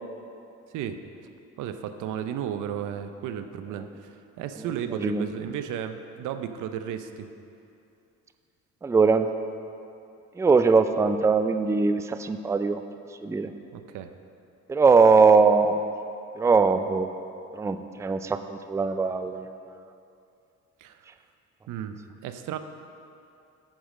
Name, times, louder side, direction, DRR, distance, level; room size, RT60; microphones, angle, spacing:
voice 1, 1.6-7.3 13.7-14.1 20.8-21.0 21.7-22.6, right 9 dB, 85° right, 9 dB, 0.6 m, -34 dB
voice 2, 4.9-5.2 8.8-9.3 10.4-12.8 13.2-13.5 14.7-15.9 16.4-17.1 17.5-19.5, right 4 dB, 10° right, 9 dB, 0.3 m, -21 dB
8.9 x 5.1 x 6.3 m, 2.6 s
cardioid pair, 90°, 30 cm